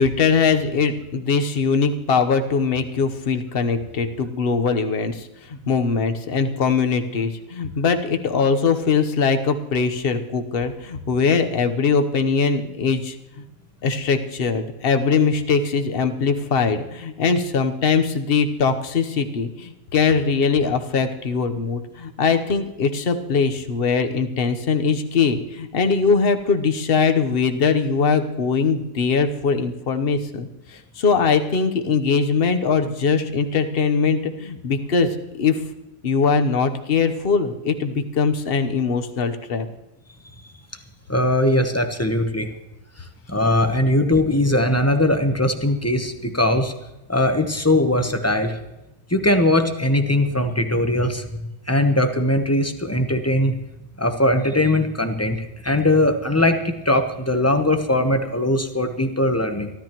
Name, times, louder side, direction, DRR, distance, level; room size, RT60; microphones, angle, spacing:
voice 1, 0.0-13.4 13.8-35.6 36.0-39.7, left 5 dB, 40° left, 7 dB, 1.0 m, -21 dB
voice 2, 41.1-42.5 43.3-46.7 47.1-48.6 49.1-53.5 54.0-59.7, left 1 dB, 15° left, 6 dB, 0.5 m, -20 dB
24.0 x 13.0 x 3.0 m, 0.97 s
omnidirectional pair, 1.9 m